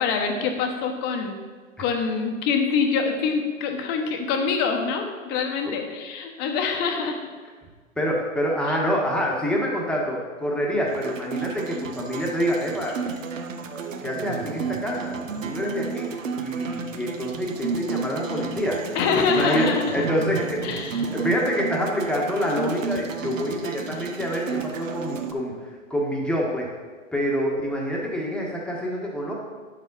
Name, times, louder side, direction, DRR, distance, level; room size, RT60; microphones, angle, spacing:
voice 1, 0.0-1.4 1.8-7.3 8.7-8.8 18.9-20.0 20.6-21.1, left 5 dB, 25° left, 4 dB, 1.1 m, -25 dB
voice 2, 8.0-13.0 14.0-18.8 19.3-19.7 19.9-20.6 21.1-26.7 27.1-29.3, equal, ahead, -2 dB, 1.4 m, -26 dB
Bazaar Trip, 10.9-25.3, right 5 dB, 70° right, 1.1 m, -32 dB
9.8 x 7.5 x 4.1 m, 1.5 s
hypercardioid pair, 130°, 40 cm